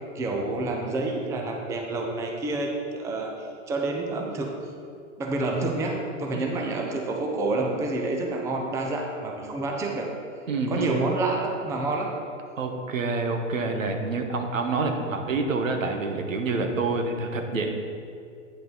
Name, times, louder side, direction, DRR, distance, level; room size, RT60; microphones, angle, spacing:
voice 1, 0.1-4.5 5.2-10.1 10.7-12.1, right 2 dB, 10° right, 1 dB, 0.5 m, -28 dB
voice 2, 10.5-11.0 12.6-17.7, right 3 dB, 85° right, 4 dB, 1.1 m, -27 dB
9.1 x 5.6 x 3.9 m, 2.4 s
hypercardioid pair, 125°, 38 cm